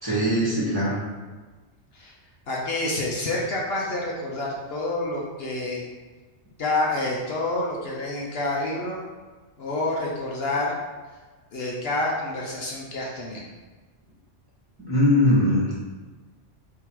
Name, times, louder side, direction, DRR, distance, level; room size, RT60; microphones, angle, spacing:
voice 1, 0.0-1.0 14.9-15.7, left 1 dB, 20° right, -8 dB, 1.2 m, -21 dB
voice 2, 2.5-5.8 6.6-9.0 9.6-10.8 11.5-13.5, left 2 dB, 60° left, -3 dB, 0.9 m, -28 dB
3.6 x 2.8 x 4.5 m, 1.3 s
omnidirectional pair, 1.2 m